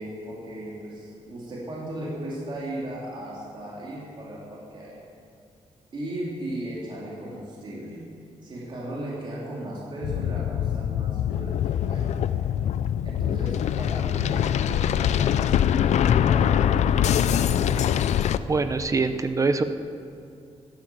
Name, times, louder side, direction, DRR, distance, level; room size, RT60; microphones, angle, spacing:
voice 1, 0.0-5.0 5.9-8.0 8.4-12.4 13.0-18.0, right 1 dB, 45° right, -5 dB, 3.4 m, -37 dB
sound 1, 10.0-18.4, left 9 dB, 90° left, 0.5 m, -23 dB
voice 2, 18.5-19.6, right 4 dB, 30° right, 9 dB, 0.8 m, -24 dB
15.0 x 12.0 x 7.9 m, 2.4 s
wide cardioid pair, 145°, 11 cm